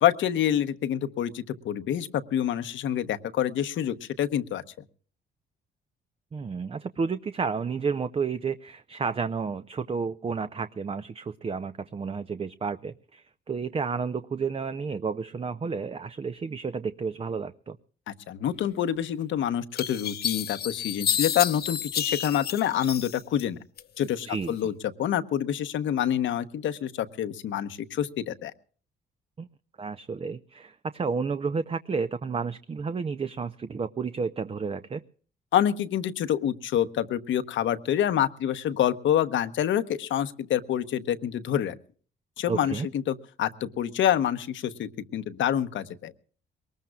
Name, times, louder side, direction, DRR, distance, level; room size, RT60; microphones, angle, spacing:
voice 1, 0.0-4.6 18.1-23.6 24.0-24.7 25.0-28.5 35.5-41.7 42.4-46.1, left 10 dB, 75° left, 11 dB, 1.0 m, -27 dB
voice 2, 6.3-17.8 24.3-24.7 29.4-29.5 29.8-35.0 42.5-42.9, right 5 dB, 30° right, 11 dB, 0.6 m, -31 dB
sound 1, 19.0-19.1 19.8-23.4 23.8-24.5, left 9 dB, 55° left, 0.7 m, -30 dB
22.5 x 19.5 x 2.3 m, 0.43 s
cardioid pair, 90°, 20 cm